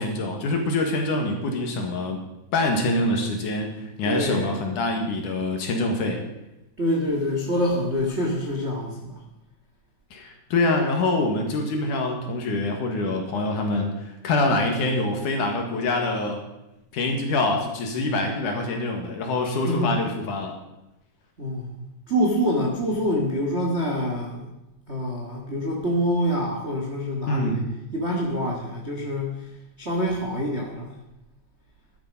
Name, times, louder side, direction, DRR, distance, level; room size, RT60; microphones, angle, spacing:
voice 1, 0.0-2.2 2.5-6.2 10.1-16.4 16.9-20.5 27.3-27.6, left 2 dB, 60° left, 3 dB, 2.8 m, -25 dB
voice 2, 4.0-4.5 6.8-9.1 19.6-19.9 21.4-21.7 22.1-24.4 24.9-27.6 27.9-29.5 29.8-30.9, equal, 45° right, -1 dB, 0.8 m, -26 dB
12.5 x 11.0 x 5.4 m, 0.93 s
omnidirectional pair, 4.7 m